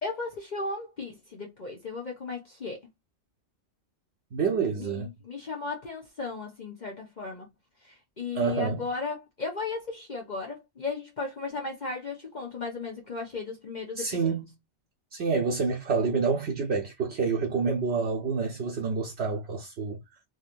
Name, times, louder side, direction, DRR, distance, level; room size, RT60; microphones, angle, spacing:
voice 1, 0.0-2.8 4.8-7.5 7.8-14.3, left 4 dB, 45° left, 1.0 m, -36 dB
voice 2, 4.3-5.1 8.3-8.8 14.0-14.5 15.1-20.0, right 5 dB, 70° right, 1.0 m, -28 dB
3.8 x 3.0 x 2.5 m
omnidirectional pair, 1.2 m